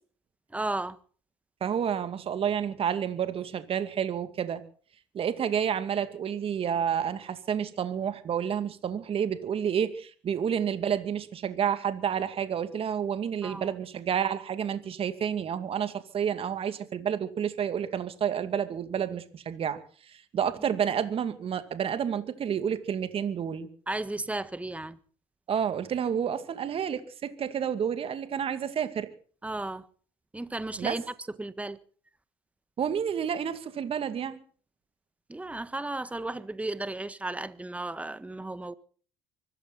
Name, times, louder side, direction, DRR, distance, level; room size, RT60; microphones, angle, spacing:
voice 1, 0.5-1.0 13.4-13.7 23.9-25.0 29.4-29.8 30.3-31.0 31.4-31.8 35.3-38.7, right 2 dB, 10° right, 1.5 m, -34 dB
voice 2, 1.6-4.6 5.1-23.7 25.5-29.1 30.8-31.0 32.8-34.4, right 8 dB, 45° right, 2.4 m, -30 dB
24.5 x 14.0 x 4.1 m
supercardioid pair, 80°, 13 cm